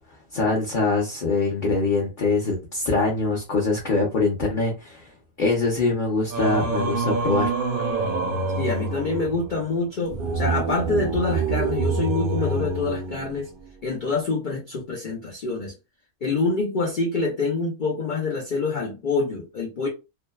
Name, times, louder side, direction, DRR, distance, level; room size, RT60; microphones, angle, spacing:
voice 1, 0.3-5.1 5.4-7.5, left 3 dB, 45° left, 0.7 m, -23 dB
Singing, 6.3-13.7, right 3 dB, 60° right, 0.6 m, -26 dB
voice 2, 8.6-13.5 13.8-15.7 16.2-19.9, left 3 dB, 90° left, 0.4 m, -26 dB
2.6 x 2.1 x 2.2 m
omnidirectional pair, 1.5 m